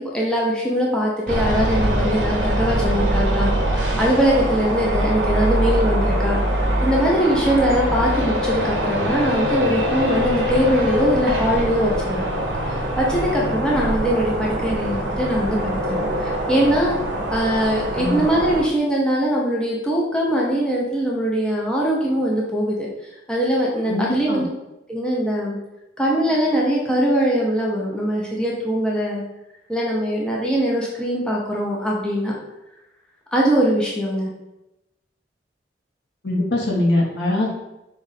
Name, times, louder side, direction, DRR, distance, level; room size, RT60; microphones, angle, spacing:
voice 1, 0.0-3.5 4.0-6.4 6.8-12.2 12.7-17.0 17.3-22.9 23.3-24.5 24.9-25.6 26.0-29.2 29.7-32.3 33.3-34.3, equal, 5° left, -4 dB, 0.6 m, -21 dB
sound 1, 1.3-18.6, equal, 90° right, 0.8 m, -23 dB
voice 2, 23.8-24.4 36.2-37.5, left 1 dB, 75° left, -3 dB, 1.2 m, -22 dB
4.1 x 2.5 x 4.0 m, 0.94 s
head